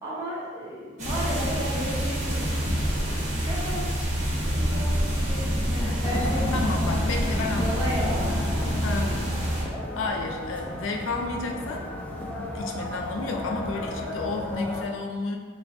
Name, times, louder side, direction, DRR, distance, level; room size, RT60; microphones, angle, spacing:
voice 1, 0.0-3.1 3.3-4.0 4.3-6.7 7.3-8.3 9.1-9.2, equal, 15° right, -8 dB, 1.1 m, -34 dB
sound 1, 1.0-9.6, equal, 40° right, 1.2 m, -27 dB
sound 2, 6.0-14.8, left 1 dB, 5° left, 0.4 m, -33 dB
voice 2, 6.5-7.8 8.8-9.2 10.0-11.9 12.2-15.4, left 3 dB, 70° left, 2 dB, 0.4 m, -31 dB
4.1 x 2.2 x 4.1 m, 1.5 s
head